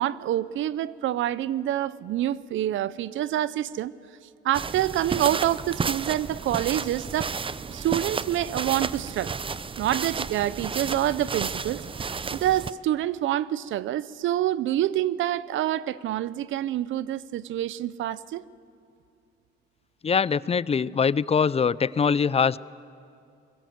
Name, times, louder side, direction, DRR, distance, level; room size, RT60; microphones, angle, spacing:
voice 1, 0.0-3.9 4.4-7.3 7.7-9.4 9.8-11.8 12.3-18.4, right 12 dB, 80° right, 19 dB, 0.7 m, -27 dB
sound 1, 4.5-12.7, right 5 dB, 25° right, 0.6 m, -32 dB
voice 2, 20.0-22.6, left 6 dB, 30° left, 20 dB, 0.5 m, -23 dB
24.5 x 21.5 x 7.9 m, 2.5 s
cardioid pair, 90°, 20 cm